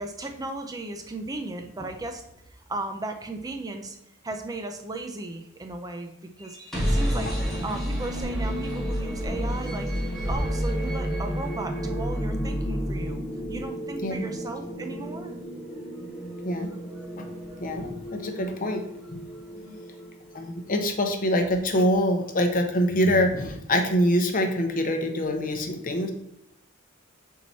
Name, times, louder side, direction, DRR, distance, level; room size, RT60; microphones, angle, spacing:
voice 1, 0.0-4.0 4.2-6.6 6.8-15.3 19.5-19.8, right 2 dB, 20° right, 4 dB, 0.5 m, -36 dB
sound 1, 6.4-20.3, equal, ahead, 1.9 m, -30 dB
voice 2, 17.6-18.8 19.1-19.2 20.3-26.1, equal, 40° left, 4 dB, 0.8 m, -25 dB
5.6 x 4.6 x 4.1 m, 0.77 s
head